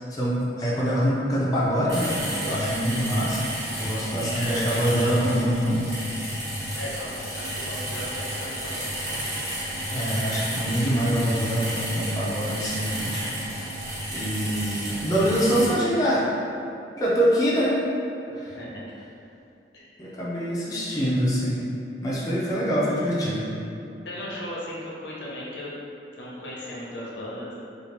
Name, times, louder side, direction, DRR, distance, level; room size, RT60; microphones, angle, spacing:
voice 1, 0.1-3.4 3.8-6.0 9.9-13.2 13.7-13.8 14.1-16.2 17.0-17.8 18.3-18.6 20.0-21.6 22.0-23.4, equal, 20° left, -8 dB, 0.4 m, -24 dB
sound 1, 1.9-15.7, equal, 65° right, 1.2 m, -32 dB
voice 2, 4.0-4.6 6.7-9.5 18.3-19.0 19.7-20.2 24.0-25.7 26.2-27.5, left 1 dB, 80° left, -6 dB, 0.7 m, -37 dB
2.8 x 2.4 x 3.2 m, 2.6 s
head